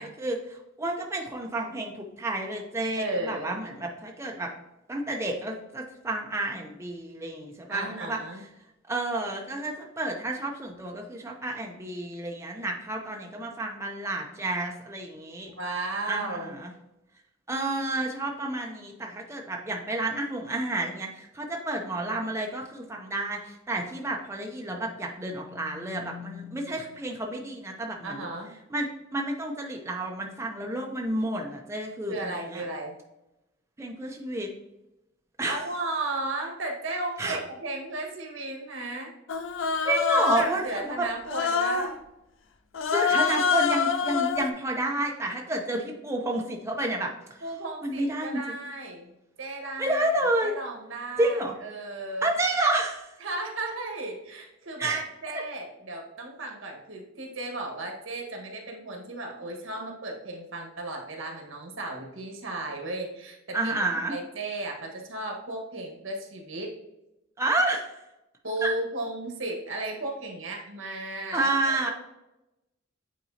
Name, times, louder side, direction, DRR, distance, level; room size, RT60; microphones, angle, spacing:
voice 1, 0.0-4.5 4.9-8.2 8.9-15.5 16.0-16.7 17.5-28.3 28.7-28.9 29.1-32.6 33.8-34.5 35.4-35.6 37.2-37.4 39.8-41.1 42.9-47.1 47.8-48.4 49.8-50.5 51.2-51.5 52.2-53.1 54.8-55.0 63.5-64.1 67.4-67.9 68.6-68.7 71.3-71.9, right 2 dB, 15° right, 1 dB, 0.5 m, -30 dB
voice 2, 2.9-3.6 7.7-8.4 15.6-16.6 28.0-28.5 32.1-32.9 35.4-39.1 40.3-42.0 47.4-49.1 49.4-50.0 50.4-52.3 53.2-63.8 64.1-66.7 68.4-71.9, right 2 dB, 75° right, 1 dB, 1.5 m, -35 dB
sound 1, 24.7-27.2, left 9 dB, 20° left, 1.3 m, -46 dB
Human voice, 39.3-40.6 41.3-41.9 42.7-44.5, left 6 dB, 70° left, 0.5 m, -26 dB
8.4 x 4.0 x 2.8 m, 0.92 s
head